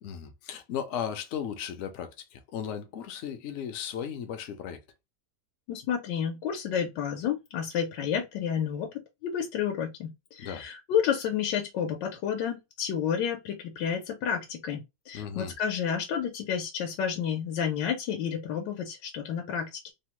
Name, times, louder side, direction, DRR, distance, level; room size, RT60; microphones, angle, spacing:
voice 1, 0.0-4.8 10.4-10.6 15.1-15.5, left 8 dB, 70° left, 0.7 m, -36 dB
voice 2, 5.7-8.9 9.2-19.9, left 8 dB, 90° left, 1.3 m, -30 dB
3.1 x 2.1 x 2.9 m
omnidirectional pair, 1.9 m